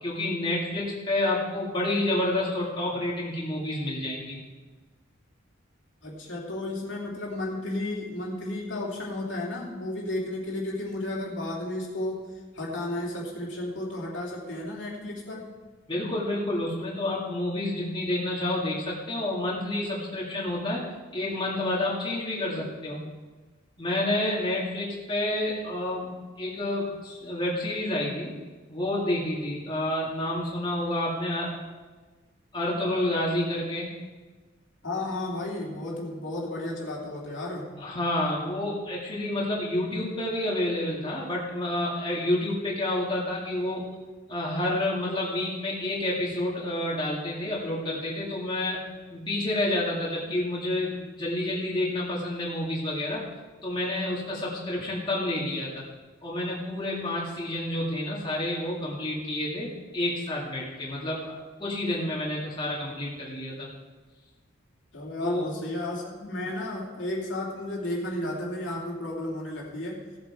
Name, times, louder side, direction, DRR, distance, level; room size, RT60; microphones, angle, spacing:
voice 1, 0.0-4.4 15.9-20.8 21.1-23.0 23.8-28.3 28.7-31.6 32.5-33.9 37.8-43.9 44.3-48.8 49.1-53.3 53.6-55.8 56.2-61.3 61.6-63.7 65.2-65.4, left 1 dB, 25° left, -5 dB, 2.3 m, -29 dB
voice 2, 6.0-12.3 12.5-15.5 34.8-37.7 64.9-70.0, left 1 dB, 70° left, -3 dB, 2.9 m, -33 dB
16.5 x 7.9 x 4.7 m, 1.3 s
head